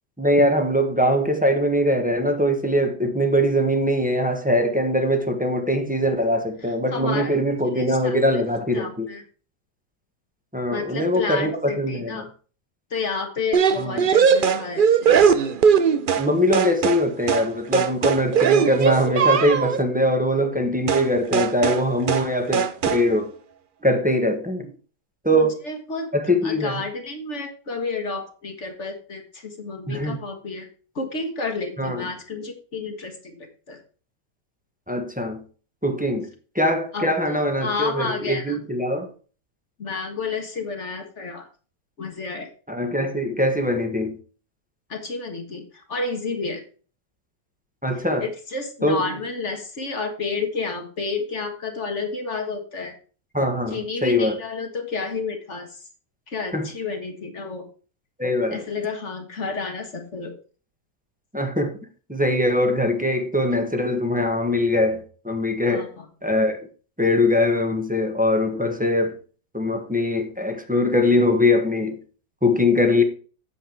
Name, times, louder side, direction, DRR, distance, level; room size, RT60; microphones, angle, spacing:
voice 1, 0.2-9.1 10.5-12.3 13.8-14.0 16.2-23.3 23.8-24.7 25.2-25.6 26.1-26.7 29.9-30.2 31.8-32.0 34.9-35.4 35.8-36.3 36.5-39.1 42.7-44.2 47.8-48.3 48.8-49.1 53.3-54.4 56.5-56.7 58.2-58.6 61.3-61.7 62.1-65.9 66.2-66.6 67.0-69.1 69.5-72.0 72.4-73.0, left 1 dB, 5° right, 1.2 m, -22 dB
voice 2, 6.6-7.4 7.6-8.4 8.7-9.2 10.7-12.3 12.9-15.3 25.3-26.1 26.4-30.7 30.9-33.8 36.9-38.6 39.8-41.5 42.0-42.5 44.9-46.6 47.9-53.0 53.7-55.9 56.3-57.7 58.5-60.4 65.7-66.1, left 4 dB, 45° left, 1.7 m, -31 dB
sound 1, 13.5-16.3 16.5-17.0 17.3-17.5 17.7-19.8 20.9-21.1 21.3-21.8 22.1-22.3 22.5-23.0, right 7 dB, 60° right, 0.5 m, -19 dB
8.6 x 7.2 x 4.5 m
omnidirectional pair, 1.7 m